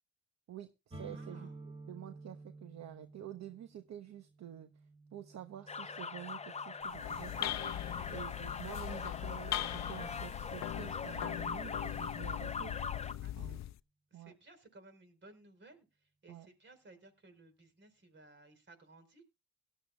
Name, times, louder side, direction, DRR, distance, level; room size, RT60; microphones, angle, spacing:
voice 1, 0.5-12.8 13.4-13.6 14.1-14.3 16.3-16.5, right 11 dB, 60° right, 9 dB, 1.0 m, -49 dB
sound 1, 0.9-8.5, right 2 dB, 20° right, 4.6 m, -53 dB
voice 2, 1.1-1.5 7.9-8.3 13.2-13.6 14.1-19.3, right 2 dB, 40° right, 9 dB, 4.4 m, -59 dB
sound 2, 5.7-13.1, left 5 dB, 20° left, 0.8 m, -42 dB
sound 3, 6.8-13.8, left 13 dB, 65° left, 0.6 m, -40 dB
18.0 x 12.0 x 2.3 m, 0.26 s
cardioid pair, 90°, 30 cm